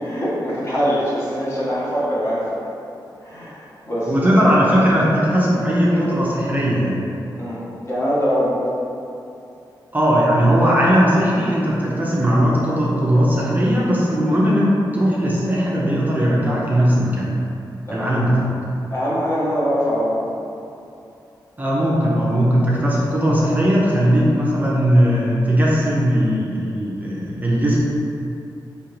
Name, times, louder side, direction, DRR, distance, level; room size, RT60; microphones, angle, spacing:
voice 1, 0.0-2.7 3.2-4.6 5.9-6.1 7.4-8.6 17.9-18.2 18.9-20.2, equal, 35° left, -8 dB, 1.0 m, -23 dB
voice 2, 4.1-7.0 9.9-17.3 17.9-18.4 21.6-27.8, equal, 20° right, -6 dB, 0.5 m, -18 dB
3.6 x 2.9 x 3.1 m, 2.7 s
wide cardioid pair, 120°, 8 cm